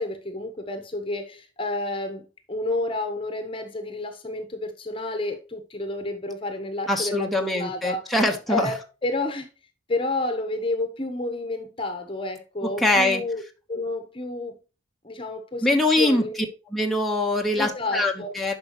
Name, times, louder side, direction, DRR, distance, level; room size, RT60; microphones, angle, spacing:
voice 1, 0.0-8.1 8.5-9.5 9.9-13.4 13.7-14.5 15.0-16.5 17.6-18.3, left 2 dB, 30° left, 1.1 m, -30 dB
voice 2, 6.9-8.7 12.6-13.2 15.6-16.2 16.7-18.5, left 1 dB, ahead, 1.2 m, -23 dB
10.5 x 5.5 x 3.1 m
head